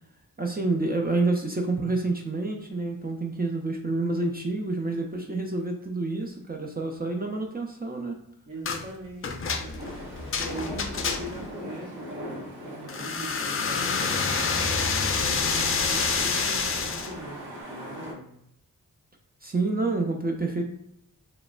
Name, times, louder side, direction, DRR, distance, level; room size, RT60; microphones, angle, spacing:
voice 1, 0.4-8.2 19.4-20.7, right 3 dB, 25° right, 2 dB, 0.4 m, -28 dB
voice 2, 8.5-14.7 15.1-18.3, equal, 55° right, -4 dB, 0.8 m, -41 dB
sound 1, 8.6-8.8 9.2-11.5 12.9-17.1, left 5 dB, 35° left, 0.4 m, -27 dB
sound 2, 9.8-18.1, equal, 85° right, 0.8 m, -40 dB
3.0 x 2.0 x 2.3 m, 0.74 s
cardioid pair, 45°, 37 cm